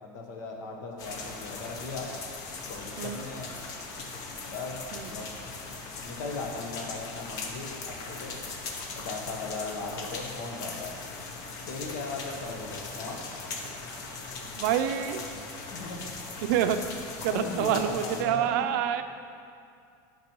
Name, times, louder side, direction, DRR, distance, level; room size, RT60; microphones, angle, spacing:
voice 1, 0.0-2.1 2.7-3.5 4.5-5.3 6.0-8.4 9.0-10.9 11.7-13.2 15.7-16.0 17.3-18.7, left 3 dB, 80° left, 1 dB, 1.1 m, -37 dB
sound 1, 1.0-18.2, left 3 dB, 40° left, 0.6 m, -39 dB
voice 2, 14.6-15.2 16.4-16.8 17.2-19.0, right 10 dB, 65° right, 9 dB, 0.4 m, -27 dB
10.0 x 5.2 x 3.0 m, 2.4 s
cardioid pair, 180°, 10 cm